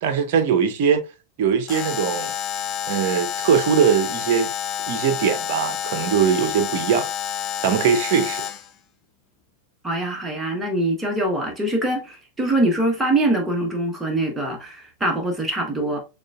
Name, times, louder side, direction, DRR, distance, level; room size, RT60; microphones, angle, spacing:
voice 1, 0.0-1.0 1.4-2.3 2.9-4.5 4.9-7.1 7.6-8.5, right 7 dB, 50° right, 0.6 m, -21 dB
Alarm, 1.7-8.7, left 10 dB, 30° left, 0.6 m, -29 dB
voice 2, 9.8-16.0, right 1 dB, 10° right, 1.1 m, -23 dB
6.2 x 2.4 x 2.3 m
figure-of-eight pair, 90°, 0 cm